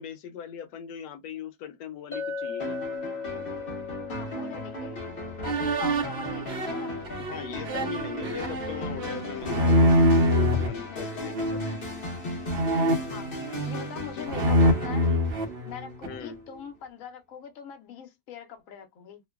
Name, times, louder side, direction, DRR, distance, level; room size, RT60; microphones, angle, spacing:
voice 1, 0.0-2.8 7.2-11.8 16.0-16.4, left 8 dB, 85° left, 1.2 m, -39 dB
Chink clink, 2.1-6.6, left 5 dB, 10° left, 0.9 m, -38 dB
sound 1, 2.6-16.1, equal, 40° left, 0.9 m, -36 dB
voice 2, 4.1-5.0 5.4-7.0 10.8-11.5 13.1-15.1 15.6-19.2, left 7 dB, 60° left, 1.1 m, -42 dB
sound 2, 5.4-10.7 11.3-11.8 12.5-13.9 14.3-16.2, equal, 55° right, 0.7 m, -25 dB
2.9 x 2.2 x 2.2 m
omnidirectional pair, 1.8 m